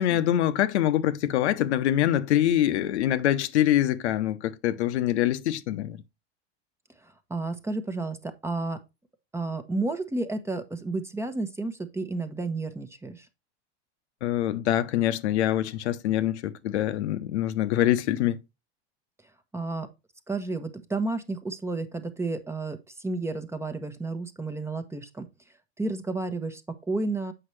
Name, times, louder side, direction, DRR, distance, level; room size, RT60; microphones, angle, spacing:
voice 1, 0.0-6.0 14.2-18.4, left 12 dB, 85° left, 0.9 m, -24 dB
voice 2, 7.0-8.8 9.3-13.3 19.5-19.9 20.3-25.3 25.8-27.3, right 3 dB, 10° right, 0.9 m, -31 dB
7.8 x 5.7 x 3.2 m
supercardioid pair, 120°, 33 cm